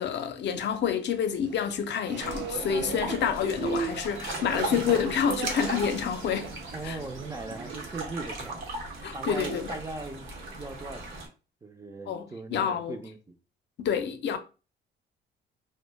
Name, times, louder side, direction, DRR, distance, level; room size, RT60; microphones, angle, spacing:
voice 1, 0.0-6.5 6.8-7.0 9.0-9.7 12.1-13.0 13.8-14.4, left 8 dB, 60° left, 0.5 m, -28 dB
sound 1, 1.5-8.1, right 6 dB, 65° right, 0.5 m, -38 dB
sound 2, 2.2-11.3, right 2 dB, 85° right, 0.9 m, -37 dB
voice 2, 6.7-8.6 9.1-11.3 11.6-13.4, right 2 dB, 15° right, 0.3 m, -39 dB
2.1 x 2.1 x 3.2 m
cardioid pair, 90°, 20 cm